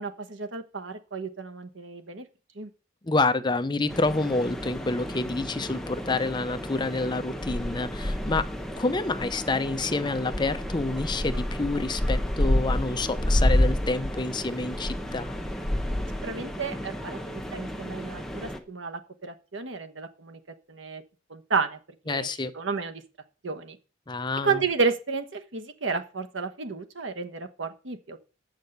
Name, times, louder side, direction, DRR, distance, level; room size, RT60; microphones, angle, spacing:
voice 1, 0.0-2.2 2.6-2.7 16.2-20.4 20.7-21.0 21.3-21.8 22.1-22.3 22.5-23.0 23.4-23.8 24.4-28.2, right 4 dB, 75° right, 7 dB, 1.2 m, -31 dB
voice 2, 3.0-8.5 8.8-15.3 22.1-22.5 24.1-24.6, left 3 dB, 25° left, 11 dB, 0.6 m, -28 dB
sound 1, 3.9-18.6, left 1 dB, ahead, 0.9 m, -30 dB
8.3 x 6.2 x 7.9 m, 0.35 s
head